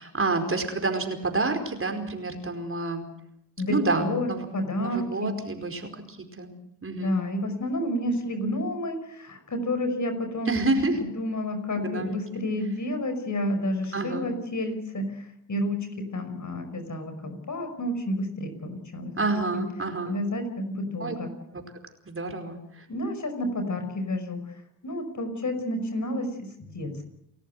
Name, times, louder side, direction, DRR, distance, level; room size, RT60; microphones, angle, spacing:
voice 1, 0.0-3.1 3.7-4.4 4.8-6.5 6.8-7.2 10.5-11.0 11.8-12.2 13.9-14.3 19.2-20.1 21.0-21.1 21.5-21.6 22.0-22.9, right 3 dB, 30° right, 6 dB, 4.9 m, -29 dB
voice 2, 3.6-4.3 4.5-5.3 7.0-10.7 11.0-19.1 19.5-19.6 20.0-21.3 22.9-24.4 24.8-27.1, left 1 dB, 40° left, 7 dB, 5.6 m, -30 dB
29.5 x 14.0 x 7.9 m, 0.75 s
hypercardioid pair, 45°, 43 cm